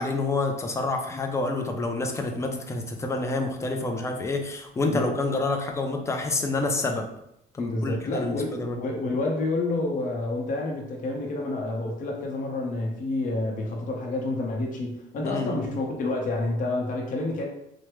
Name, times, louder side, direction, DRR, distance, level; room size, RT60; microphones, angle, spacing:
voice 1, 0.0-7.1 7.5-8.8 15.2-15.6, left 2 dB, 15° left, 3 dB, 0.4 m, -28 dB
voice 2, 7.6-17.5, left 2 dB, 50° left, 0 dB, 0.7 m, -29 dB
3.2 x 2.0 x 3.0 m, 0.79 s
cardioid pair, 110°, 17 cm